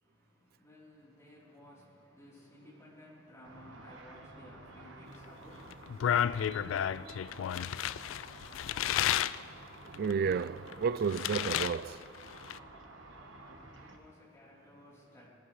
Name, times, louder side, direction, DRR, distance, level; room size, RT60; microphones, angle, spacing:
voice 1, 0.0-7.9 13.3-15.3, left 1 dB, 15° left, 3.6 m, -56 dB
Car / Traffic noise roadway noise / Engine, 3.4-14.0, right 2 dB, 75° right, 1.4 m, -51 dB
sound 1, 5.7-9.4 9.9-11.8 12.0-12.6, left 10 dB, 85° left, 0.3 m, -32 dB
voice 2, 9.8-12.2, right 6 dB, 50° right, 0.3 m, -32 dB
19.0 x 14.5 x 3.2 m
head